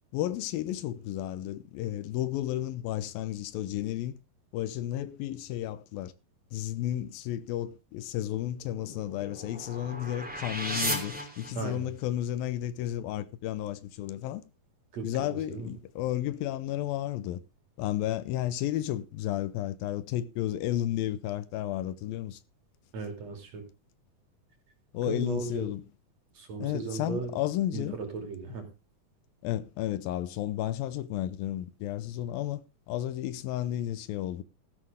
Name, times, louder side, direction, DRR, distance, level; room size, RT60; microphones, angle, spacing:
voice 1, 0.1-4.2 4.5-6.1 6.5-14.4 15.0-17.4 17.8-22.4 24.9-25.8 26.6-28.0 29.4-34.4, left 13 dB, 80° left, 2.5 m, -32 dB
sound 1, 8.6-12.0, equal, 5° right, 2.0 m, -36 dB
voice 2, 11.6-11.9 14.9-15.7 22.9-23.6 25.1-25.7 26.4-27.4 27.7-28.7, right 4 dB, 50° right, 3.7 m, -36 dB
14.0 x 11.0 x 3.5 m
omnidirectional pair, 4.3 m